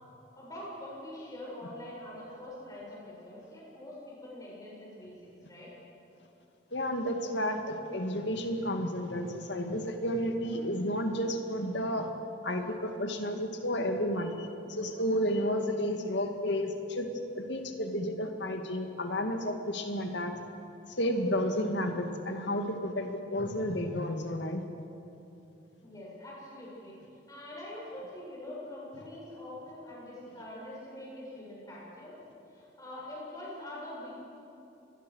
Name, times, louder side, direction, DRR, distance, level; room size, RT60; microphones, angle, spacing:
voice 1, 0.4-5.1 5.5-5.7 15.3-15.5 25.8-27.0 27.3-32.1 32.5-34.2, left 1 dB, 20° left, -6 dB, 7.7 m, -44 dB
voice 2, 6.7-12.1 12.4-17.1 17.3-20.4 20.9-24.6, equal, 60° left, 5 dB, 2.3 m, -32 dB
27.0 x 21.0 x 6.5 m, 2.9 s
head